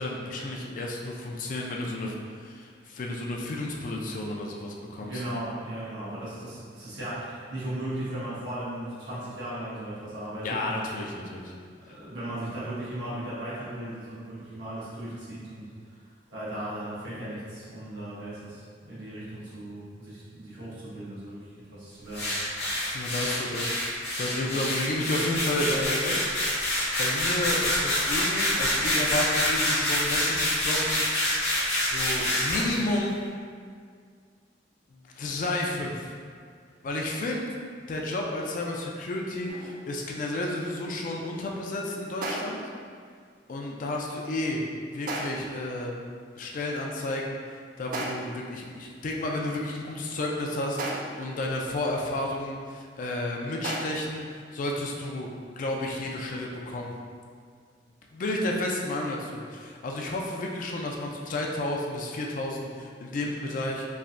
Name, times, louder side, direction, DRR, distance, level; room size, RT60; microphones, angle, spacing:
voice 1, 0.0-5.2 10.4-11.5 22.9-26.2 26.5-31.3 31.8-33.2 34.9-36.1 36.8-37.4 37.9-42.6 43.5-44.6 44.9-46.0 46.4-55.3 55.6-56.9 58.1-63.9, left 1 dB, 45° left, -1 dB, 0.3 m, -32 dB
voice 2, 4.9-10.8 11.9-15.7 16.3-22.3, right 1 dB, 80° right, -11 dB, 1.3 m, -37 dB
sound 1, 22.1-32.8, left 1 dB, 65° left, 0.8 m, -27 dB
sound 2, 39.5-39.9 42.2-42.8 45.1-45.6 47.9-48.5 50.8-51.4 53.6-54.2, right 1 dB, 50° right, 0.3 m, -34 dB
3.2 x 2.6 x 2.5 m, 2.1 s
head